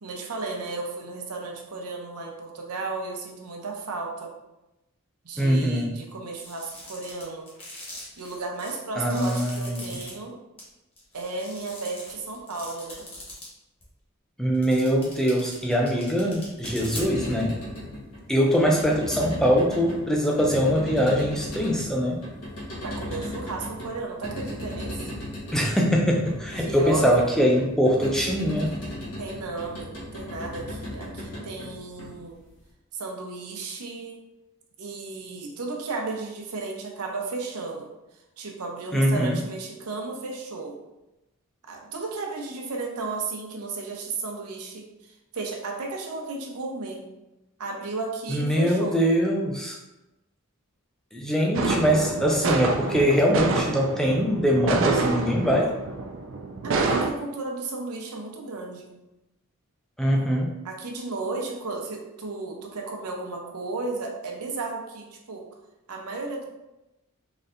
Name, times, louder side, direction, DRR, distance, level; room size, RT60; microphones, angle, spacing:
voice 1, 0.0-4.3 5.2-7.5 8.2-10.4 11.1-13.1 22.8-25.1 26.6-27.3 29.2-32.4 32.9-34.2 34.8-37.9 38.4-40.8 41.7-47.0 47.6-49.0 56.6-58.9 60.6-65.5 65.9-66.4, right 3 dB, 90° right, 1 dB, 0.7 m, -34 dB
voice 2, 5.4-5.9 9.0-10.0 14.4-17.6 18.3-22.2 25.5-28.7 38.9-39.4 48.3-49.8 51.1-55.7 60.0-60.5, equal, ahead, -1 dB, 0.4 m, -22 dB
sound 1, 6.4-10.1 10.6-10.7 11.0-13.5 13.8-13.9 14.5-17.3, left 1 dB, 25° left, 1.2 m, -41 dB
sound 2, 16.4-32.6, left 1 dB, 85° left, 1.2 m, -37 dB
sound 3, 51.5-57.1, right 3 dB, 60° right, 0.4 m, -27 dB
4.0 x 3.2 x 2.6 m, 0.96 s
head